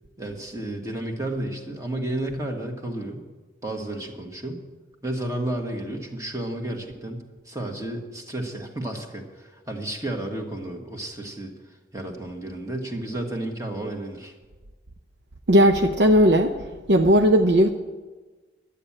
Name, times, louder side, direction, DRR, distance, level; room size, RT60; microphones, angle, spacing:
voice 1, 0.2-3.2 3.6-4.6 5.0-14.3, right 1 dB, 15° right, 2 dB, 1.5 m, -32 dB
voice 2, 15.5-16.5 16.9-17.7, equal, 60° right, 5 dB, 0.7 m, -17 dB
12.0 x 8.5 x 8.7 m, 1.3 s
head